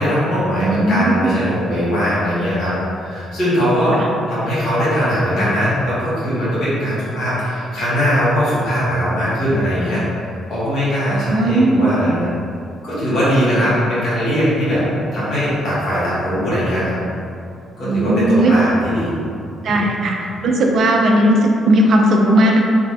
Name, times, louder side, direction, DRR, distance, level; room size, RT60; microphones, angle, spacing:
voice 1, 0.0-2.7 3.0-4.0 4.3-10.0 10.5-12.3 12.8-14.8 15.1-17.0 17.8-19.1 19.7-19.9, equal, 70° left, -10 dB, 1.5 m, -20 dB
voice 2, 0.6-1.3 3.9-4.0 11.1-11.9 13.6-13.7 17.8-18.5 19.6-20.2 20.4-22.6, right 1 dB, 60° right, 1 dB, 0.4 m, -16 dB
3.1 x 2.3 x 2.7 m, 2.4 s
supercardioid pair, 60°, 0 cm